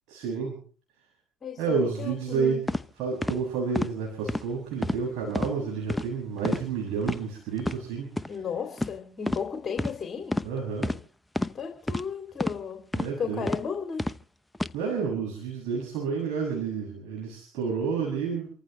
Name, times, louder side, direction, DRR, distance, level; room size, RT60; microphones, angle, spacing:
voice 1, 0.1-0.6 1.6-2.7 3.0-8.1 10.4-10.9 12.9-13.5 14.7-18.5, right 5 dB, 70° right, -2 dB, 7.2 m, -30 dB
voice 2, 1.4-2.6 8.3-10.4 11.5-12.9 13.2-14.1, left 6 dB, 35° left, 4 dB, 3.0 m, -34 dB
sound 1, 2.7-2.8 3.2-3.4 3.8-3.9 4.3-4.5 4.8-5.0 5.3-5.5 5.9-6.1 6.4-6.7 7.0-7.2 7.6-7.8 8.2-8.3 8.8-9.0 9.3-9.4 9.8-9.9 10.3-10.5 10.8-11.0 11.4-11.5 11.9-12.0 12.4-12.6 12.9-13.1 13.5-13.6 14.0-14.2 14.5-14.7, left 1 dB, 5° left, 0.8 m, -28 dB
28.5 x 15.0 x 3.3 m, 0.41 s
supercardioid pair, 80°, 0 cm